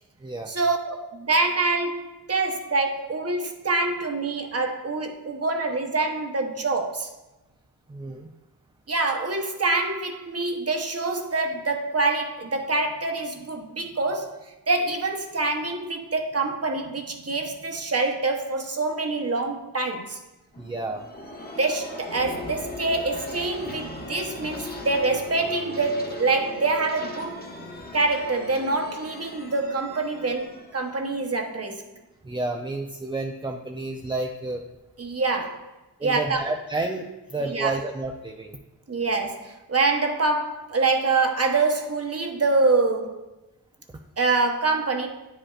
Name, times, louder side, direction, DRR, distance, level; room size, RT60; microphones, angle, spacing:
voice 1, 0.5-7.1 8.9-20.2 21.6-27.4 27.9-31.8 35.0-35.7 36.0-36.4 37.5-37.8 38.9-43.2 44.2-45.1, right 3 dB, 35° right, 1.0 m, -25 dB
voice 2, 7.9-8.3 20.6-21.0 32.2-34.6 36.0-38.6 43.9-44.0, right 2 dB, 15° right, 0.5 m, -30 dB
sound 1, 20.5-32.0, left 2 dB, 25° left, 1.2 m, -39 dB
9.7 x 5.1 x 2.4 m
cardioid pair, 65°, 40 cm